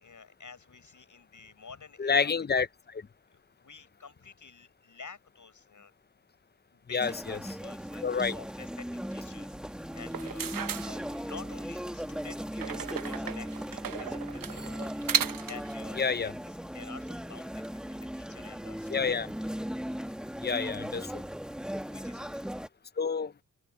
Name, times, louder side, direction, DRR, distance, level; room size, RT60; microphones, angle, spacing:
voice 1, 0.0-2.6 3.3-5.9 6.7-10.5 10.8-14.8 15.4-19.2 20.1-20.7 21.8-22.2, left 5 dB, 55° left, 6.6 m, -50 dB
voice 2, 2.0-3.0 6.9-7.4 8.0-8.4 16.0-16.3 18.9-19.3 20.4-21.2 23.0-23.3, left 5 dB, 30° left, 0.7 m, -29 dB
sound 1, 7.0-22.7, equal, ahead, 1.4 m, -38 dB
sound 2, 10.0-11.6 12.6-15.7, right 8 dB, 65° right, 1.0 m, -35 dB
open air
cardioid pair, 55°, 36 cm